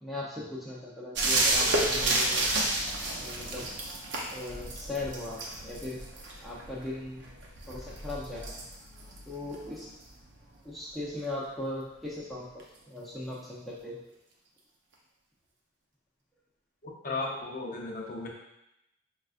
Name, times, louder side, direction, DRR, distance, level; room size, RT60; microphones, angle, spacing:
voice 1, 0.0-2.5 3.1-3.7 4.3-6.0 6.4-7.3 7.7-8.7 9.3-9.9 10.6-14.0, left 2 dB, ahead, -6 dB, 0.6 m, -38 dB
sound 1, 1.1-10.5 12.6-12.7, right 2 dB, 65° right, 0.6 m, -31 dB
voice 2, 16.8-18.3, left 3 dB, 45° left, -2 dB, 0.6 m, -35 dB
5.2 x 2.4 x 2.4 m, 0.85 s
head